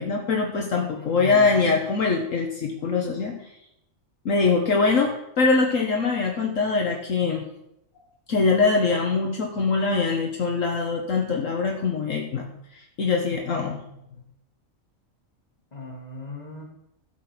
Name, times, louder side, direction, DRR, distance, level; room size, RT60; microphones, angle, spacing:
voice 1, 0.0-3.3 4.2-7.4 8.3-12.5 12.7-13.8, left 4 dB, 65° left, 1 dB, 1.5 m, -23 dB
voice 2, 0.9-1.7 15.7-16.6, left 2 dB, 30° left, 0 dB, 2.4 m, -36 dB
12.5 x 6.1 x 5.9 m, 0.79 s
omnidirectional pair, 1.4 m